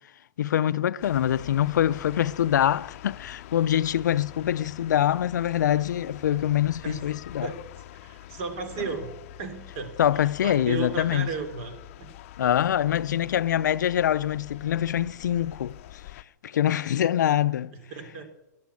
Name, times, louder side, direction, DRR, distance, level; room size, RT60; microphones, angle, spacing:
voice 1, 0.4-7.5 10.0-11.3 12.4-15.8 16.4-17.7, left 11 dB, 85° left, 0.5 m, -24 dB
sound 1, 1.0-16.2, left 14 dB, 50° left, 0.7 m, -45 dB
voice 2, 8.0-12.1 12.4-12.5 17.7-18.3, right 4 dB, 45° right, 3.2 m, -35 dB
14.5 x 11.0 x 8.4 m
hypercardioid pair, 155°, 9 cm